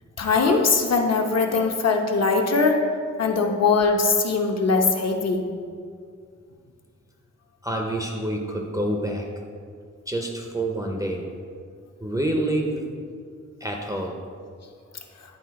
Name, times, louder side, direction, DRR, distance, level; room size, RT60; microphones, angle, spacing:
voice 1, 0.2-2.8 3.2-5.4, left 4 dB, 60° left, 2 dB, 0.8 m, -21 dB
voice 2, 7.6-9.3 10.1-11.3 12.0-12.9 13.6-14.2, right 1 dB, 10° right, 0 dB, 0.5 m, -27 dB
10.0 x 4.0 x 4.6 m, 2.1 s
wide cardioid pair, 170°, 29 cm